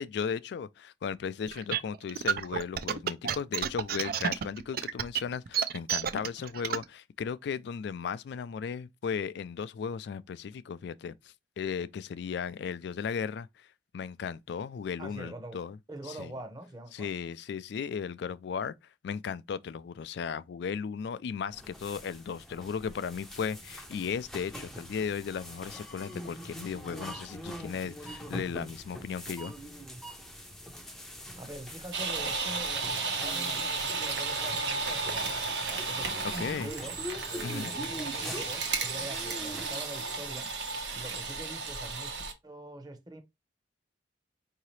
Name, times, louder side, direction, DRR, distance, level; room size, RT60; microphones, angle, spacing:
voice 1, 0.0-13.7 13.9-15.8 16.0-16.3 16.9-18.7 19.0-29.5 36.4-36.7 37.4-37.7, left 6 dB, 65° left, 0.3 m, -36 dB
sound 1, 1.5-6.8, right 8 dB, 55° right, 0.4 m, -30 dB
voice 2, 15.0-15.6 15.9-17.1 31.4-35.3 35.7-36.3 36.6-37.0 37.3-40.5 40.9-43.2, right 1 dB, 20° right, 0.8 m, -44 dB
sound 2, 21.5-39.7, equal, ahead, 0.6 m, -43 dB
sound 3, 31.9-42.3, right 4 dB, 75° right, 1.1 m, -33 dB
4.8 x 2.8 x 3.1 m
head